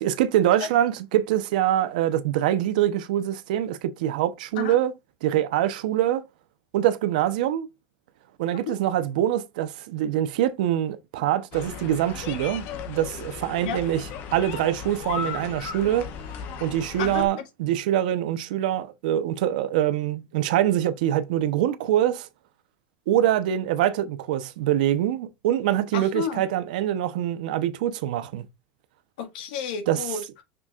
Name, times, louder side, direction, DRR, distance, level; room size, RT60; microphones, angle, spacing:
voice 1, 0.0-4.9 5.2-6.3 6.7-7.7 8.4-16.1 16.6-22.3 23.1-28.4 29.9-30.0, right 12 dB, 80° right, 0.9 m, -24 dB
sound 1, 11.5-17.3, left 7 dB, 50° left, 1.1 m, -36 dB
voice 2, 17.0-17.4 25.9-26.4 29.2-30.4, left 7 dB, 85° left, 1.8 m, -31 dB
6.2 x 6.1 x 2.5 m
supercardioid pair, 145°, 4 cm